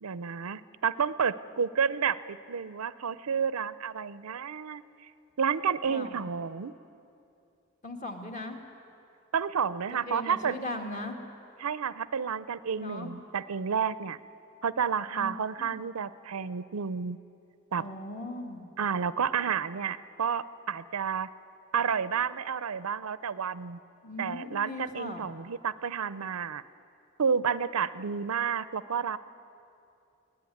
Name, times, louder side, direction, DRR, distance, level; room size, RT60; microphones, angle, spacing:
voice 1, 0.0-4.8 5.4-6.7 9.3-10.6 11.6-14.2 14.6-17.2 17.7-17.8 18.8-21.3 21.7-23.8 24.2-26.6 27.2-29.2, right 6 dB, 85° right, 16 dB, 0.6 m, -30 dB
voice 2, 7.8-8.6 9.9-11.2 12.8-13.1 15.1-15.3 15.6-15.8 17.8-18.7 24.0-25.3, left 1 dB, 35° left, 3 dB, 2.0 m, -38 dB
23.0 x 17.5 x 9.3 m, 2.7 s
head